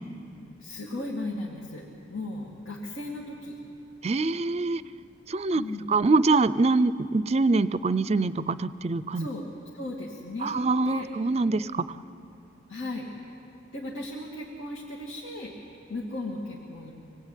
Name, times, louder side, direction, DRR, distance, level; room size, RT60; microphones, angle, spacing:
voice 1, 0.6-1.8 2.1-3.6 5.5-6.0 9.1-9.4 9.7-10.6 10.8-11.1 12.7-13.1 13.7-15.5 15.9-16.9, left 2 dB, 90° left, -3 dB, 2.7 m, -36 dB
voice 2, 4.0-4.8 5.3-5.6 5.9-9.3 10.4-11.8, right 3 dB, 35° right, 16 dB, 0.5 m, -24 dB
25.0 x 20.0 x 9.2 m, 2.9 s
head